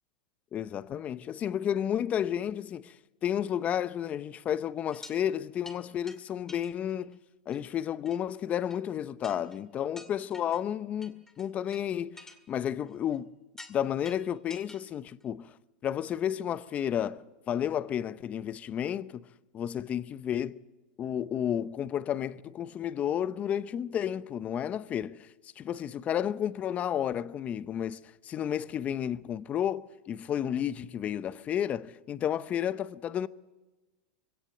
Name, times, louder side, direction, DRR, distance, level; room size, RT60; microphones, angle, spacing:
voice 1, 0.5-3.0 3.2-7.2 7.5-12.2 12.5-13.3 13.7-15.6 15.8-19.3 19.5-20.6 21.0-25.3 25.6-33.3, left 9 dB, 30° left, 0.7 m, -32 dB
sound 1, 4.9-5.2 5.6-5.8 6.1-6.2 6.5-7.1 7.5-7.6 8.1-8.2 8.7-8.8 9.2-9.6 10.0-10.6 11.0-11.8 12.2-13.2 13.6-13.8 14.0-14.8 15.2-15.3, left 2 dB, 10° left, 2.1 m, -49 dB
22.5 x 17.0 x 7.8 m
supercardioid pair, 130°, 5 cm